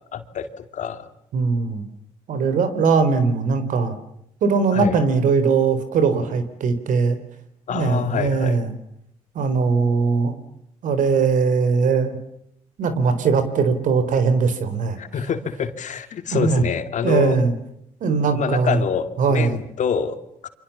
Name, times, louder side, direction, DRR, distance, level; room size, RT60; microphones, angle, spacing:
voice 1, 0.1-1.1 4.7-5.0 7.7-8.6 15.0-17.4 18.3-20.5, left 7 dB, 65° left, 8 dB, 2.5 m, -26 dB
voice 2, 1.3-1.8 2.3-3.9 4.4-7.2 7.7-8.8 9.4-10.3 10.8-12.2 12.8-15.0 16.3-16.6 17.0-17.5 18.0-18.8 19.2-19.6, right 5 dB, 70° right, 11 dB, 4.0 m, -20 dB
29.5 x 25.5 x 7.3 m, 0.74 s
supercardioid pair, 60°, 14 cm